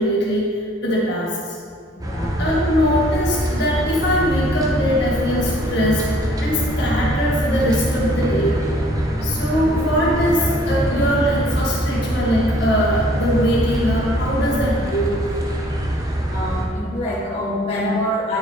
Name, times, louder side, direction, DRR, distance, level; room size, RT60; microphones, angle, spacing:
voice 1, 0.0-1.6 2.4-8.6 9.2-15.2, equal, 65° left, -5 dB, 2.1 m, -21 dB
voice 2, 1.9-2.4 9.5-9.6 15.9-16.0 16.3-18.4, left 1 dB, 35° left, -8 dB, 1.4 m, -25 dB
sound 1, 2.0-16.6, right 1 dB, 20° right, 0.9 m, -24 dB
sound 2, 4.1-14.6, equal, 15° left, 1.4 m, -29 dB
9.5 x 6.3 x 3.7 m, 2.1 s
head